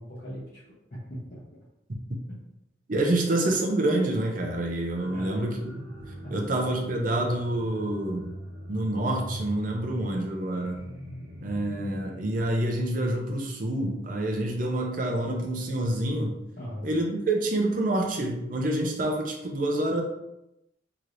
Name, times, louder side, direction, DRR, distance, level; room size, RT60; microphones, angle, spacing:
voice 1, 0.0-1.4 5.1-5.5 6.2-6.5 16.6-16.9, equal, 45° left, -10 dB, 0.8 m, -39 dB
voice 2, 2.9-5.7 6.3-8.3 8.7-10.9 11.4-16.3 16.8-20.0, right 1 dB, 45° right, 1 dB, 0.5 m, -27 dB
sound 1, 4.9-12.5, right 1 dB, 80° right, 0.8 m, -43 dB
3.2 x 2.9 x 2.6 m, 0.87 s
head